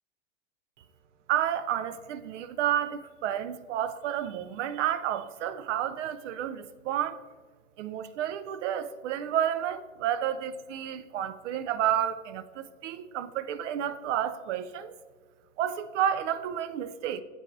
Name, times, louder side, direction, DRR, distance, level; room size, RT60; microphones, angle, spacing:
voice 1, 1.3-7.2 7.8-14.9 15.6-17.2, right 10 dB, 70° right, 0.6 m, -30 dB
8.2 x 4.4 x 2.6 m
hypercardioid pair, 110°, 37 cm